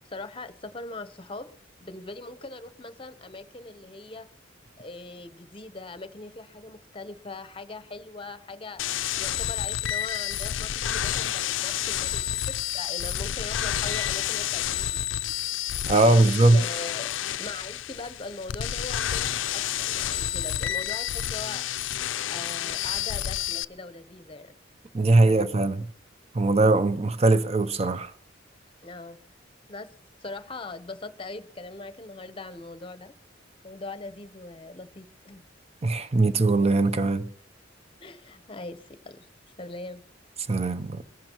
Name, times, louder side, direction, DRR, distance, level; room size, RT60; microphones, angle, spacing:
voice 1, 0.0-1.5 1.8-4.3 4.8-8.9 9.1-15.2 15.6-16.3 16.5-17.1 17.4-21.7 22.3-24.5 25.2-25.5 28.8-29.2 29.7-29.9 30.2-33.1 33.6-35.4 38.0-39.3 39.6-40.0, left 2 dB, 30° left, 0.8 m, -41 dB
sound 1, 8.8-23.7, left 11 dB, 80° left, 0.4 m, -30 dB
voice 2, 15.9-16.6 24.9-25.8 26.3-28.1 35.8-37.3 40.5-41.0, right 2 dB, 35° right, 0.6 m, -21 dB
22.5 x 14.5 x 3.0 m
head